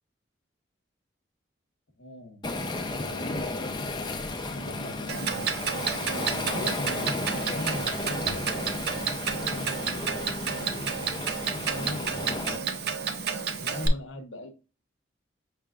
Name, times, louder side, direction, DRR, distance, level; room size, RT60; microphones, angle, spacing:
voice 1, 2.0-5.5 6.0-9.2 9.5-11.0 11.5-12.9 13.5-14.5, left 1 dB, 85° left, 0.9 m, -41 dB
Waves surf, 2.4-12.6, left 2 dB, 25° left, 0.5 m, -34 dB
Clock, 5.1-13.9, right 6 dB, 55° right, 0.5 m, -31 dB
5.6 x 3.4 x 2.4 m
head